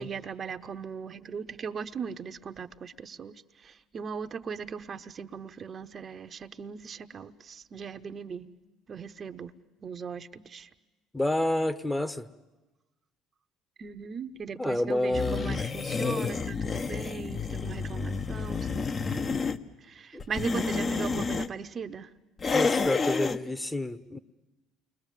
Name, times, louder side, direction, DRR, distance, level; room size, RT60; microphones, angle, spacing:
voice 1, 0.0-8.6 8.9-9.5 9.8-10.7 13.8-19.4 19.8-22.1, right 6 dB, 40° right, 0.9 m, -39 dB
voice 2, 11.1-12.3 14.6-15.6 20.1-20.2 22.5-24.2, left 1 dB, 10° left, 1.1 m, -29 dB
sound 1, 15.1-19.6 20.2-21.5 22.4-23.4, left 4 dB, 35° left, 1.0 m, -29 dB
29.0 x 22.0 x 7.5 m
hypercardioid pair, 70°, 0 cm